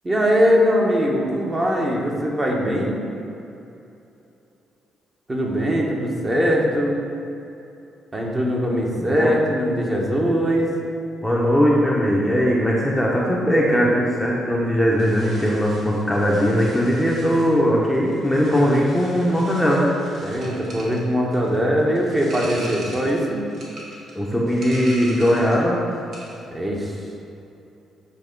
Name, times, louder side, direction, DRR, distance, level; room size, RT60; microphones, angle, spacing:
voice 1, 0.0-3.0 5.3-7.0 8.1-10.7 20.2-23.4 26.5-27.0, equal, 25° right, -2 dB, 1.1 m, -21 dB
voice 2, 9.0-9.3 11.2-19.9 24.1-25.8, equal, ahead, -4 dB, 0.9 m, -19 dB
sound 1, 15.0-25.7 25.9-26.4, right 1 dB, 70° right, 1.5 m, -40 dB
8.3 x 3.0 x 5.2 m, 2.8 s
cardioid pair, 90°, 0 cm